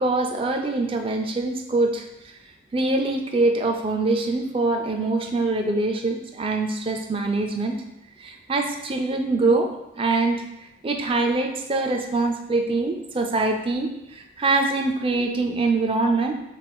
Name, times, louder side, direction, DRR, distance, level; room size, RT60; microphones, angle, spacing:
voice 1, 0.0-2.1 2.7-7.8 8.2-16.3, right 3 dB, 25° right, 4 dB, 0.4 m, -24 dB
3.8 x 3.2 x 4.2 m, 0.89 s
head